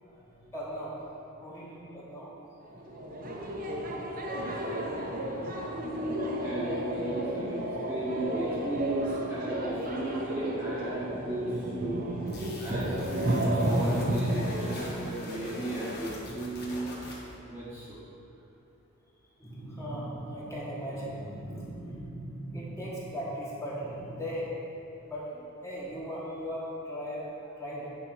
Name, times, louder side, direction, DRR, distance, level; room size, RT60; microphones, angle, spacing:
voice 1, 0.0-1.0 1.4-2.3 2.7-4.5 8.1-8.4 12.4-12.8 17.6-17.7 19.2-24.5 25.0-25.3 25.6-27.9, equal, 15° left, -7 dB, 1.5 m, -39 dB
voice 2, 2.7-3.1 6.4-7.6 7.9-12.2 12.6-16.9 17.4-18.0, right 1 dB, 10° right, -9 dB, 1.2 m, -35 dB
sound 1, 2.7-14.7, right 1 dB, 40° right, 0.8 m, -32 dB
sound 2, 12.3-17.3, left 1 dB, 45° left, 1.7 m, -42 dB
8.5 x 4.4 x 6.1 m, 2.9 s
head